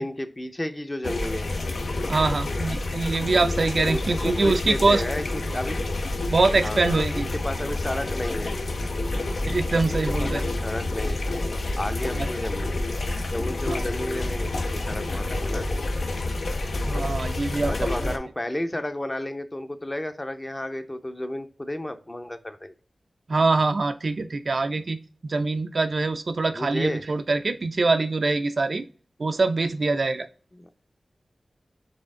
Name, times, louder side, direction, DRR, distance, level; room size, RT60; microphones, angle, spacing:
voice 1, 0.0-1.6 3.9-5.8 6.6-8.6 9.2-9.3 9.9-11.2 11.7-12.8 13.3-16.1 17.7-22.7 26.5-27.0 30.5-30.7, left 1 dB, 25° left, 8 dB, 0.6 m, -32 dB
sound 1, 1.0-18.2, left 2 dB, 75° left, 0.6 m, -28 dB
voice 2, 2.1-5.0 6.3-7.3 9.5-10.5 12.1-12.3 13.7-13.8 16.9-17.7 18.0-18.2 23.3-28.8 29.2-30.3, right 3 dB, 65° right, 9 dB, 0.4 m, -24 dB
4.2 x 3.4 x 3.6 m, 0.39 s
wide cardioid pair, 85°, 0 cm